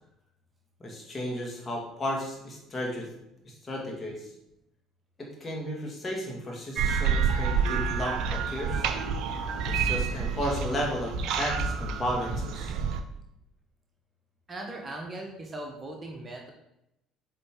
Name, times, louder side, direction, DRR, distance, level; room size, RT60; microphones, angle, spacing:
voice 1, 0.8-3.1 3.4-4.3 5.2-8.9 9.7-12.7, equal, 25° left, -1 dB, 1.9 m, -34 dB
sound 1, 6.8-13.0, right 6 dB, 55° right, 0.5 m, -28 dB
voice 2, 14.5-16.5, right 1 dB, 25° right, 1 dB, 1.1 m, -39 dB
8.5 x 3.3 x 3.7 m, 0.84 s
figure-of-eight pair, 55°, 0 cm